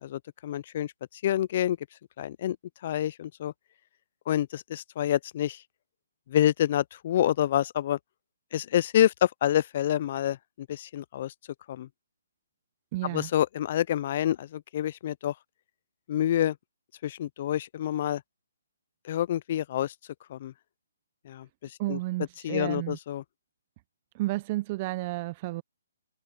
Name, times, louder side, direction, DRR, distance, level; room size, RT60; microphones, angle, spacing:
voice 1, 0.0-1.8 2.2-2.6 2.8-3.5 4.3-5.6 6.3-8.0 8.5-11.3 11.7-11.9 13.1-15.3 16.1-16.6 17.0-18.2 19.0-19.9 20.3-20.5 21.3-22.0 22.4-23.2, left 11 dB, 40° left, 0.3 m, -27 dB
voice 2, 12.9-13.3 21.8-23.0 24.1-25.6, right 19 dB, 30° right, 0.5 m, -31 dB
hypercardioid pair, 155°, 0 cm